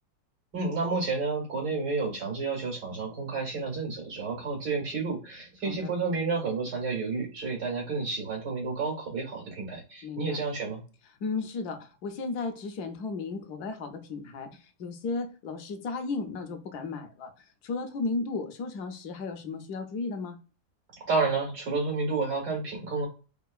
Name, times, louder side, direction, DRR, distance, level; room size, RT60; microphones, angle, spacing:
voice 1, 0.5-10.8 21.1-23.1, right 4 dB, 85° right, 2.3 m, -30 dB
voice 2, 10.0-10.4 11.2-17.3 17.6-20.4, left 4 dB, 70° left, 1.1 m, -34 dB
4.5 x 2.4 x 2.3 m
omnidirectional pair, 1.8 m